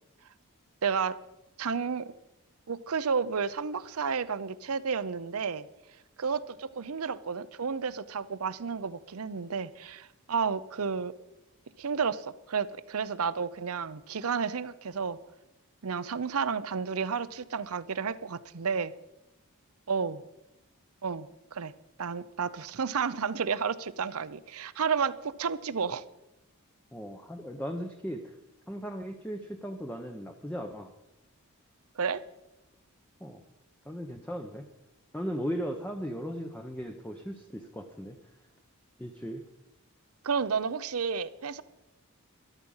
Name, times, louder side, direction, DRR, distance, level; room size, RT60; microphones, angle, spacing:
voice 1, 0.8-1.2 1.6-2.1 2.7-5.7 6.2-11.1 11.8-15.2 15.8-18.9 19.9-20.2 21.0-21.7 22.0-26.0 32.0-32.2 40.2-41.6, right 6 dB, 75° right, 16 dB, 0.6 m, -31 dB
voice 2, 26.9-28.3 28.7-30.9 33.2-33.4 33.8-34.7 35.1-38.2 39.0-39.4, equal, 5° left, 4 dB, 0.7 m, -37 dB
13.5 x 12.0 x 5.5 m, 0.96 s
head